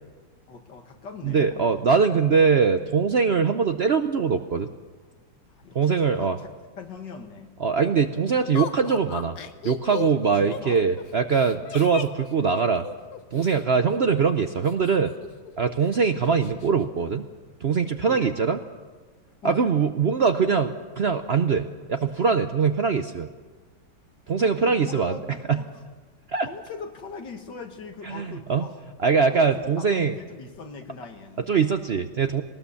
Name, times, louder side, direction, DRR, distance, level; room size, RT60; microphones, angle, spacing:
voice 1, 0.5-1.8 5.5-7.5 10.3-10.8 18.0-18.3 19.4-19.7 24.4-25.7 26.5-28.8 29.2-31.4, left 5 dB, 80° left, 5 dB, 2.4 m, -41 dB
voice 2, 1.2-4.7 5.7-6.4 7.6-9.4 9.6-12.9 13.3-15.1 15.6-17.2 17.6-18.6 19.4-23.3 24.3-25.2 25.5-25.6 26.3-26.5 28.1-28.6 29.0-30.2 31.5-32.4, right 5 dB, 55° right, 8 dB, 0.7 m, -22 dB
Laughter, 8.6-13.6 14.7-15.5 15.8-15.9 16.2-16.7, left 9 dB, 65° left, 1.5 m, -36 dB
20.5 x 19.0 x 7.1 m, 1.4 s
omnidirectional pair, 1.9 m